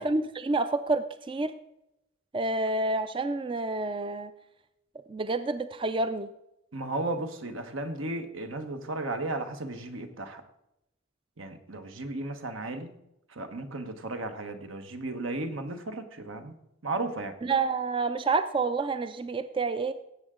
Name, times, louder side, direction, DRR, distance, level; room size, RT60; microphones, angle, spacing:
voice 1, 0.0-1.5 2.3-4.3 5.1-6.3 17.4-19.9, right 3 dB, 25° right, 12 dB, 0.3 m, -28 dB
voice 2, 6.7-10.4 11.4-13.0 13.3-16.5 16.8-17.4, right 2 dB, 80° right, 8 dB, 1.2 m, -35 dB
17.0 x 7.8 x 3.7 m, 0.86 s
head